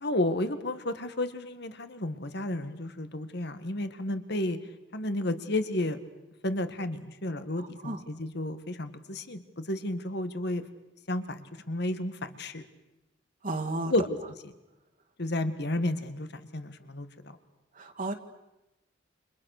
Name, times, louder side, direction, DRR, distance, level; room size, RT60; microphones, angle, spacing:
voice 1, 0.0-4.6 4.9-6.0 6.4-10.6 11.1-12.6 13.9-14.2 15.2-17.4, left 1 dB, 60° left, 11 dB, 1.8 m, -32 dB
voice 2, 7.6-8.0 13.4-13.9 17.7-18.1, right 2 dB, 45° right, 2 dB, 2.0 m, -33 dB
30.0 x 27.0 x 6.6 m, 1.0 s
head